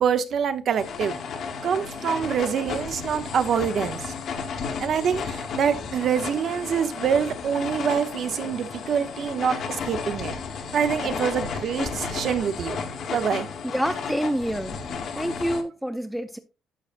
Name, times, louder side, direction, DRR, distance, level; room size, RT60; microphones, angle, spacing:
voice 1, 0.0-1.1 1.6-4.1 4.8-10.3 10.7-12.8 13.1-13.5, right 7 dB, 50° right, 0.8 m, -25 dB
sound 1, 0.8-15.6, left 5 dB, 50° left, 1.2 m, -33 dB
voice 2, 13.6-14.8 15.2-16.4, equal, ahead, 0.4 m, -27 dB
11.0 x 6.4 x 2.5 m
cardioid pair, 155°, 0 cm